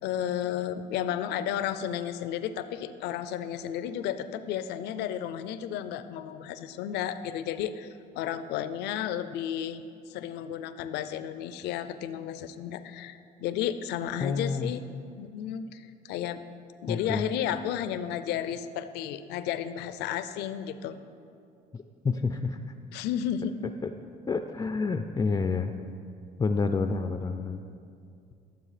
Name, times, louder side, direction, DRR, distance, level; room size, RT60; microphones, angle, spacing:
voice 1, 0.0-7.9 8.1-14.8 15.2-16.4 16.8-21.0 22.9-23.7, left 10 dB, 85° left, 12 dB, 0.5 m, -33 dB
voice 2, 14.2-14.7 16.9-17.3 22.0-22.6 23.8-23.9 24.3-25.8 26.4-27.6, left 4 dB, 20° left, 7 dB, 0.4 m, -28 dB
12.5 x 7.3 x 4.9 m, 2.5 s
cardioid pair, 110°, 17 cm